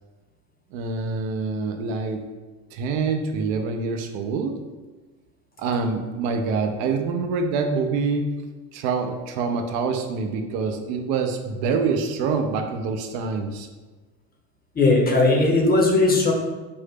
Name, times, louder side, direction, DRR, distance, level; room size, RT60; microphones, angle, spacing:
voice 1, 0.7-2.2 2.7-4.5 5.6-8.3 8.7-13.7, right 4 dB, 60° right, 4 dB, 0.6 m, -26 dB
voice 2, 14.8-16.3, left 2 dB, 20° left, 1 dB, 0.9 m, -18 dB
4.4 x 2.7 x 3.6 m, 1.3 s
hypercardioid pair, 65°, 43 cm